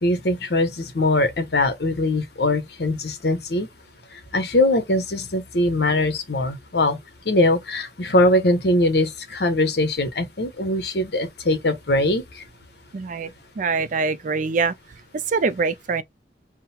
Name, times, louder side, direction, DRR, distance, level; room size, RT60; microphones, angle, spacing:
voice 1, 0.0-3.7 4.3-7.0 7.3-12.2, left 1 dB, 65° left, 1.0 m, -21 dB
voice 2, 12.9-13.3 13.6-14.7 15.1-16.0, right 4 dB, 45° right, 0.4 m, -24 dB
3.8 x 2.1 x 4.1 m
head